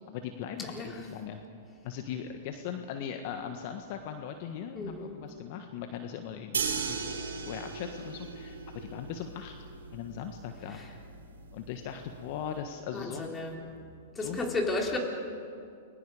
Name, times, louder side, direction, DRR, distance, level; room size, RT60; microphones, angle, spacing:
voice 1, 0.1-1.4 1.8-7.0 7.5-9.5 9.9-10.8 11.5-13.3 14.2-14.5, left 8 dB, 55° left, 6 dB, 1.5 m, -39 dB
voice 2, 4.7-5.1 10.7-10.9 12.9-13.6 14.2-15.0, left 2 dB, 15° left, 0 dB, 4.0 m, -33 dB
sound 1, 6.5-12.6, right 5 dB, 85° right, 4.4 m, -38 dB
29.5 x 22.0 x 5.0 m, 2.4 s
hypercardioid pair, 110°, 0 cm